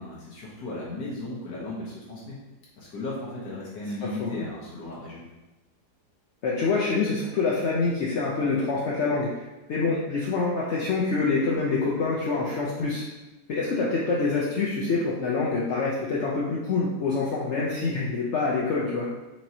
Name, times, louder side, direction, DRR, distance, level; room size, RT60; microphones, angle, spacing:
voice 1, 0.0-2.4 2.8-5.2, left 2 dB, 85° left, -6 dB, 1.5 m, -36 dB
voice 2, 6.4-9.4 9.7-13.0 13.5-19.1, left 4 dB, 70° left, -5 dB, 0.6 m, -26 dB
4.5 x 2.9 x 2.7 m, 1.0 s
omnidirectional pair, 1.7 m